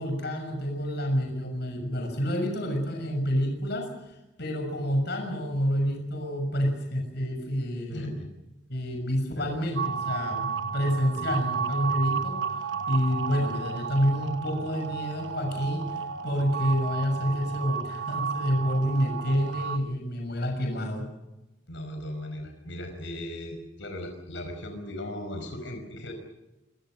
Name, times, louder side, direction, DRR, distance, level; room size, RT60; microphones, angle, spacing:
voice 1, 0.0-3.9 4.4-8.1 8.7-12.4 12.9-21.1, equal, 60° left, 3 dB, 6.5 m, -28 dB
voice 2, 7.9-8.3 9.4-9.5 21.7-26.1, left 1 dB, 85° left, 5 dB, 5.3 m, -37 dB
sound 1, 9.8-19.8, right 6 dB, 80° right, 1.4 m, -33 dB
26.5 x 22.0 x 6.5 m, 1.0 s
head